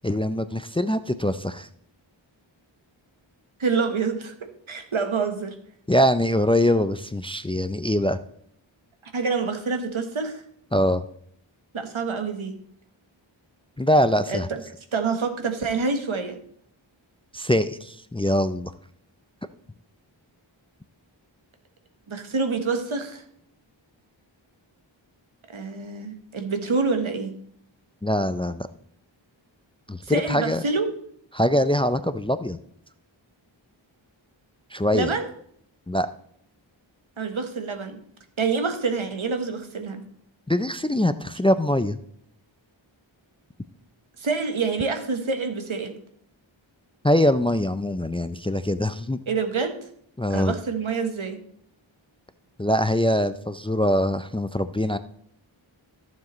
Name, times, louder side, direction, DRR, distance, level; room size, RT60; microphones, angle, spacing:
voice 1, 0.0-1.7 5.9-8.2 10.7-11.0 13.8-14.5 17.3-18.7 28.0-28.7 29.9-30.6 31.3-32.6 34.7-35.1 35.9-36.1 40.5-42.0 47.0-49.2 50.2-50.5 52.6-55.0, equal, 10° left, 12 dB, 0.4 m, -23 dB
voice 2, 3.6-4.3 4.7-5.5 9.0-10.4 11.7-12.6 14.3-14.6 14.9-16.4 22.1-23.2 25.5-27.4 30.0-30.9 34.9-35.3 37.2-38.0 38.4-40.0 44.2-46.0 49.3-49.8 50.3-51.4, right 4 dB, 75° right, 6 dB, 1.3 m, -27 dB
14.5 x 7.3 x 3.1 m, 0.65 s
wide cardioid pair, 50°, 48 cm